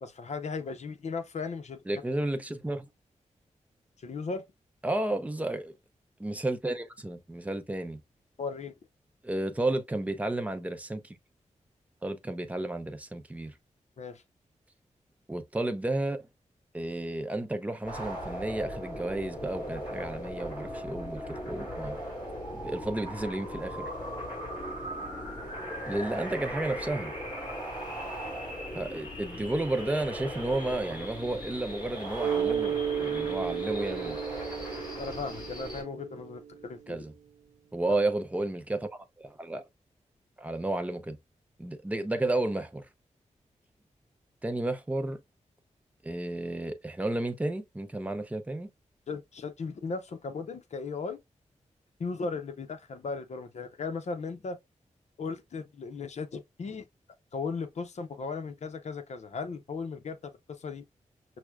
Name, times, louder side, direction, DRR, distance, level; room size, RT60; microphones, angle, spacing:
voice 1, 0.0-1.8 4.0-4.4 8.4-8.7 14.0-14.2 35.0-37.0 49.1-51.2 52.0-54.6 55.2-56.8 57.3-60.3 60.6-60.8, left 4 dB, 65° left, 0.7 m, -36 dB
voice 2, 1.9-2.9 4.8-5.7 6.2-8.0 9.2-11.2 12.0-13.5 15.3-16.2 16.7-22.0 22.6-23.9 25.9-27.1 28.7-34.2 36.9-37.1 37.7-39.6 40.4-41.2 41.6-42.9 44.4-45.2 46.0-48.7, right 2 dB, 10° right, 0.5 m, -32 dB
sound 1, 17.8-35.8, equal, 35° left, 1.9 m, -38 dB
Mallet percussion, 32.2-36.6, right 8 dB, 75° right, 0.5 m, -33 dB
6.0 x 2.1 x 2.2 m
wide cardioid pair, 100°, 13 cm